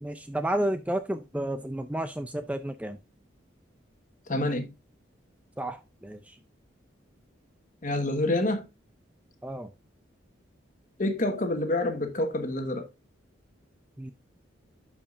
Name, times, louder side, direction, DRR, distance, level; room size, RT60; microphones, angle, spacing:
voice 1, 0.0-3.0 5.6-6.4 9.4-9.7 14.0-14.1, right 1 dB, 5° right, 0.4 m, -31 dB
voice 2, 4.3-4.7 7.8-8.7 11.0-12.9, left 1 dB, 40° left, 1.3 m, -27 dB
12.0 x 5.0 x 2.5 m
head